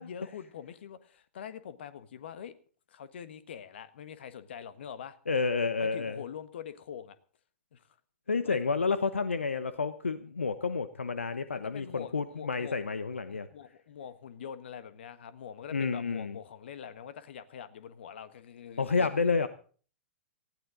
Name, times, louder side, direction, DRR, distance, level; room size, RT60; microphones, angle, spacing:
voice 1, 0.0-2.5 2.9-5.2 5.8-7.2 7.7-7.8 8.4-8.6 11.5-12.8 13.3-19.1, left 8 dB, 60° left, 13 dB, 1.6 m, -44 dB
voice 2, 5.3-6.2 8.3-13.5 15.7-16.4 18.8-19.5, left 4 dB, 80° left, 12 dB, 1.0 m, -30 dB
19.0 x 15.5 x 3.8 m, 0.42 s
figure-of-eight pair, 105°, 7 cm